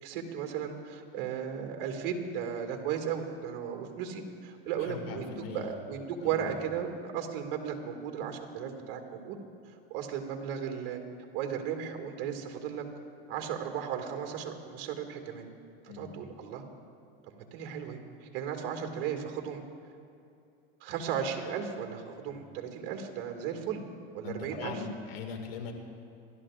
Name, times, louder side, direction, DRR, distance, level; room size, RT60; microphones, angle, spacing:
voice 1, 0.0-5.2 5.5-9.4 9.9-11.0 11.3-12.8 13.3-15.5 15.9-16.6 17.3-19.6 20.8-23.8 24.1-24.8, right 8 dB, 55° right, 3 dB, 2.1 m, -35 dB
voice 2, 4.8-5.8 6.2-6.7 15.9-16.2 22.2-22.4 24.2-25.7, left 5 dB, 80° left, 4 dB, 2.2 m, -41 dB
27.5 x 12.5 x 2.5 m, 2.6 s
supercardioid pair, 120°, 29 cm